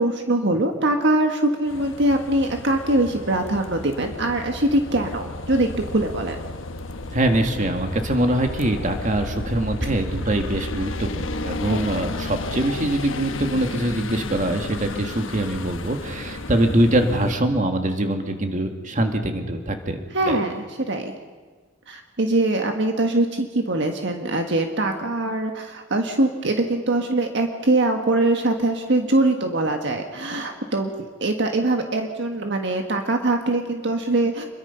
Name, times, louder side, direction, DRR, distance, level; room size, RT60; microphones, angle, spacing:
voice 1, 0.0-6.4 11.7-12.0 20.1-21.1 21.9-34.4, right 2 dB, 65° right, 4 dB, 1.6 m, -22 dB
sound 1, 1.7-17.4, left 2 dB, 80° left, 1.2 m, -33 dB
sound 2, 5.0-5.1 5.4-10.5, equal, 20° right, 6.2 m, -41 dB
voice 2, 7.1-20.4, right 1 dB, 40° right, 5 dB, 2.0 m, -23 dB
27.0 x 22.0 x 5.7 m, 1.4 s
head